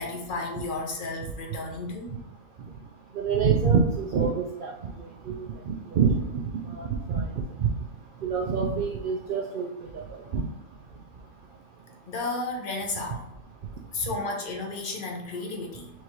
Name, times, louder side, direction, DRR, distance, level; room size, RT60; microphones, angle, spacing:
voice 1, 0.0-2.1 12.1-13.2 13.9-15.9, left 3 dB, 45° left, 2 dB, 0.9 m, -33 dB
voice 2, 3.1-7.9 8.2-10.5 13.1-13.2 14.0-14.1, right 5 dB, 65° right, 0 dB, 0.5 m, -27 dB
4.5 x 3.6 x 3.1 m, 0.85 s
omnidirectional pair, 1.5 m